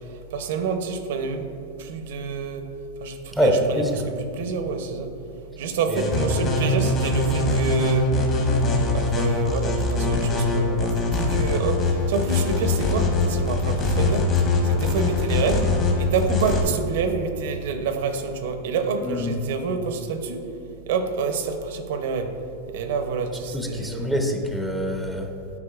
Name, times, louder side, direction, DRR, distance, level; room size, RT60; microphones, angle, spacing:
voice 1, 0.0-1.5 1.8-2.7 3.0-5.1 5.6-8.1 8.9-15.7 16.0-20.5 20.9-22.3 22.7-24.1, right 5 dB, 70° right, 7 dB, 0.6 m, -28 dB
voice 2, 3.3-4.0 5.9-6.3 19.0-19.4 23.5-25.3, equal, 5° left, 2 dB, 0.5 m, -25 dB
sound 1, 6.0-16.6, left 3 dB, 35° left, 1.1 m, -22 dB
8.2 x 5.1 x 2.4 m, 2.9 s
supercardioid pair, 130°, 0 cm